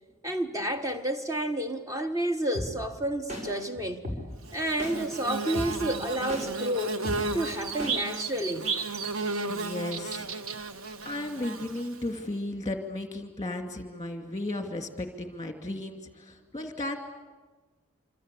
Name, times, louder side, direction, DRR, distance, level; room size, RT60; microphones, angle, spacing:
voice 1, 0.2-4.1 4.5-7.0 7.3-8.8, right 1 dB, 15° right, 1.4 m, -30 dB
sound 1, 2.5-2.7 3.3-3.4 4.0-4.2 4.8-4.9 5.5-5.7 6.3-6.4 7.0-7.2 7.8-7.9, left 1 dB, 35° right, 5.6 m, -33 dB
Bird / Buzz, 4.5-12.2, right 4 dB, 85° right, 1.3 m, -34 dB
voice 2, 9.5-10.3 11.0-17.0, left 2 dB, 15° left, 2.6 m, -35 dB
26.0 x 26.0 x 8.4 m
head